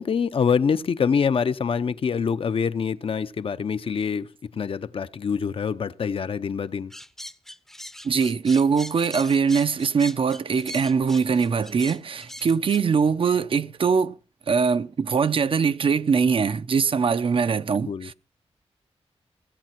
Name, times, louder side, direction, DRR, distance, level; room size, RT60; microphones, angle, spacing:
voice 1, 0.0-6.9 17.9-18.1, left 6 dB, 60° left, 0.6 m, -25 dB
sound 1, 6.9-12.8, equal, 5° left, 0.6 m, -40 dB
voice 2, 8.0-14.2 14.5-18.1, right 5 dB, 55° right, 0.6 m, -22 dB
17.0 x 8.8 x 5.9 m
wide cardioid pair, 175°, 11 cm